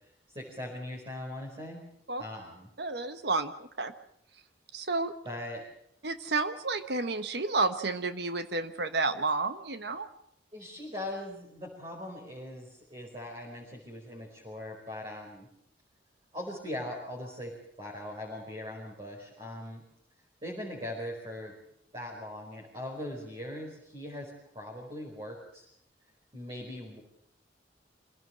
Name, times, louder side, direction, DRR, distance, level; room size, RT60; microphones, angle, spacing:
voice 1, 0.3-1.8 2.2-2.7 5.2-5.6 10.5-15.5 16.3-17.5 17.8-19.8 20.4-21.5 21.9-25.6 26.3-27.0, left 1 dB, 30° right, -2 dB, 5.0 m, -40 dB
voice 2, 2.8-3.9 4.7-5.1 6.0-10.1, right 3 dB, 65° right, 10 dB, 1.3 m, -31 dB
26.0 x 17.0 x 7.7 m, 0.71 s
head